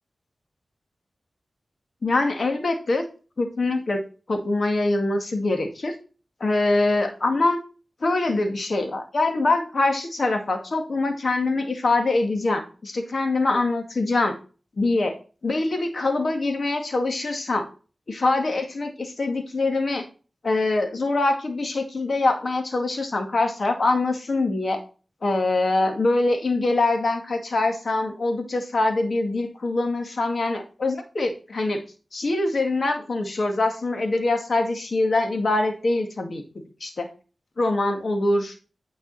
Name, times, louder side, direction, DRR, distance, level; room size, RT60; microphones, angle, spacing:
voice 1, 2.0-3.0 3.4-4.0 4.3-5.9 6.4-7.6 8.0-14.3 14.8-15.1 15.4-17.7 18.1-20.1 20.4-24.8 25.2-31.8 32.1-36.4 36.8-37.1 37.6-38.5, left 2 dB, 65° left, 5 dB, 2.1 m, -24 dB
9.6 x 5.4 x 4.2 m, 0.35 s
cardioid pair, 40°, 0 cm